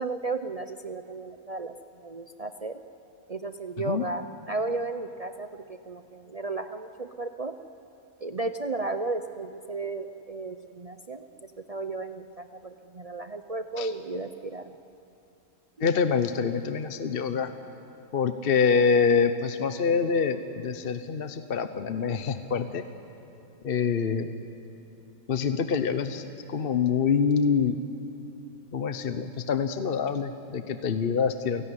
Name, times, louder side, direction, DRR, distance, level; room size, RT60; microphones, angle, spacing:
voice 1, 0.0-1.7 2.0-2.8 3.3-7.6 8.2-14.7 15.8-15.9, right 3 dB, 45° right, 8 dB, 0.5 m, -34 dB
voice 2, 15.8-17.5 18.1-22.8 23.6-24.3 25.3-26.2 26.5-27.8 28.7-31.6, left 6 dB, 45° left, 9 dB, 0.9 m, -25 dB
29.0 x 17.0 x 9.8 m, 2.8 s
omnidirectional pair, 1.5 m